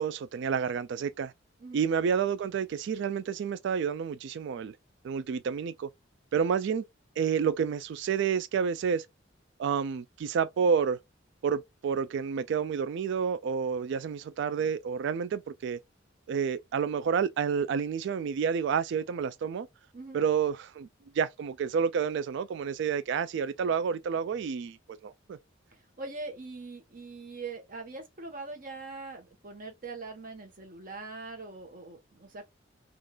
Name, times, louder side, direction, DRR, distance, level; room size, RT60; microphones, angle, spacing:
voice 1, 0.0-1.3 1.7-4.7 5.0-5.9 6.3-6.8 7.2-9.1 9.6-11.0 11.4-15.8 16.3-19.7 20.1-20.9 21.1-24.8 25.0-25.4, right 6 dB, 65° right, 0.3 m, -29 dB
voice 2, 26.0-32.5, right 3 dB, 45° right, 1.2 m, -42 dB
3.6 x 2.4 x 2.3 m
head